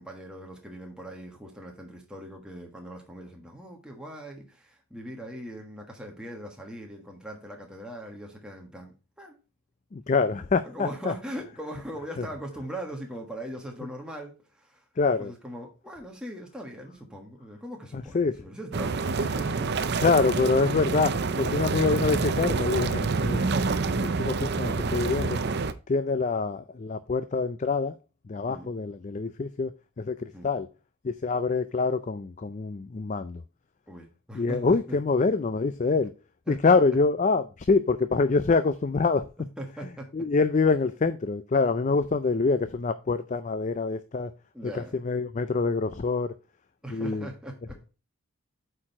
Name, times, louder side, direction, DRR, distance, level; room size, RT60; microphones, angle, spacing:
voice 1, 0.0-9.4 10.6-14.9 15.2-19.8 28.5-28.7 30.3-30.5 33.9-35.0 36.5-36.7 39.4-40.3 44.5-45.0 46.8-47.8, right 1 dB, 5° right, 1.4 m, -40 dB
voice 2, 9.9-11.1 12.2-12.3 15.0-15.3 17.9-18.4 20.0-25.4 25.9-27.9 28.3-30.7 31.0-33.4 34.3-36.1 36.5-39.3 40.1-44.3 44.7-46.3 46.9-47.3, left 4 dB, 35° left, 0.4 m, -25 dB
sound 1, 18.7-25.7, right 4 dB, 50° right, 0.5 m, -27 dB
8.6 x 4.6 x 4.3 m
head